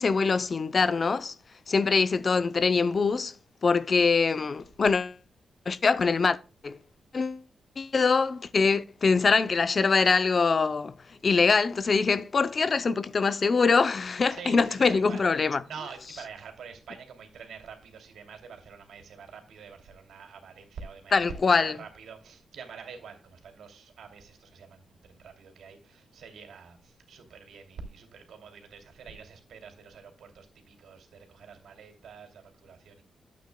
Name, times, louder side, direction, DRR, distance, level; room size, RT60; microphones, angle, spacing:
voice 1, 0.0-1.3 1.7-3.3 3.6-5.2 5.7-6.4 6.6-6.8 7.1-7.4 7.8-10.9 11.2-15.6 21.1-21.8, left 4 dB, 35° left, 0.5 m, -23 dB
voice 2, 14.3-15.2 15.6-33.0, right 6 dB, 85° right, 2.6 m, -46 dB
12.5 x 8.5 x 2.2 m
wide cardioid pair, 155°, 0 cm